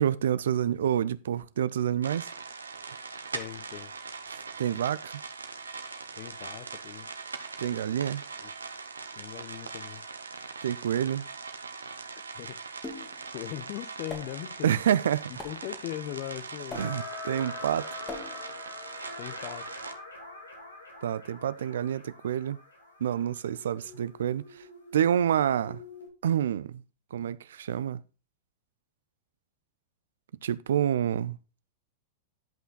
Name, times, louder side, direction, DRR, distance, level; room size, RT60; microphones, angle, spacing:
voice 1, 0.0-2.3 4.3-5.2 7.6-8.2 10.6-11.2 14.6-15.3 16.8-18.0 21.0-22.6 23.0-24.6 24.9-25.8 26.2-26.8 27.1-28.0 30.4-31.4, right 9 dB, 70° right, 0.4 m, -28 dB
sound 1, 2.0-19.9, right 4 dB, 90° right, 0.9 m, -41 dB
voice 2, 3.3-3.9 6.1-7.1 8.4-8.5 9.1-10.0 12.3-12.6 13.3-14.8 15.3-16.9 19.2-19.6, left 15 dB, 50° left, 0.6 m, -39 dB
sound 2, 12.8-13.3 14.1-14.5 15.4-15.8 16.7-17.2 18.1-18.6, left 3 dB, 20° left, 2.0 m, -42 dB
sound 3, 16.7-26.1, left 3 dB, 90° left, 2.6 m, -44 dB
10.5 x 5.6 x 4.0 m
hypercardioid pair, 100°, 0 cm